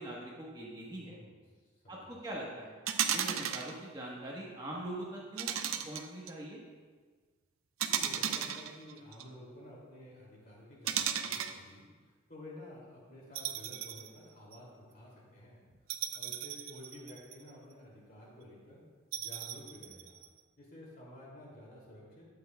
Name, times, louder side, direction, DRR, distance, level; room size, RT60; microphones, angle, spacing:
voice 1, 0.0-1.2 1.9-2.8 3.1-5.5 5.8-6.6, right 1 dB, 20° right, -4 dB, 1.2 m, -42 dB
voice 2, 1.0-1.4 1.8-2.3 7.8-15.6 16.1-18.8 19.2-20.2 20.6-22.3, left 1 dB, 45° left, -4 dB, 2.6 m, -52 dB
sound 1, 2.9-3.7 5.4-6.3 7.8-9.2 10.9-11.6 13.3-14.1 14.5-14.6 15.9-17.5 19.1-20.3, right 9 dB, 85° right, 0.6 m, -35 dB
12.0 x 8.8 x 2.3 m, 1.5 s
head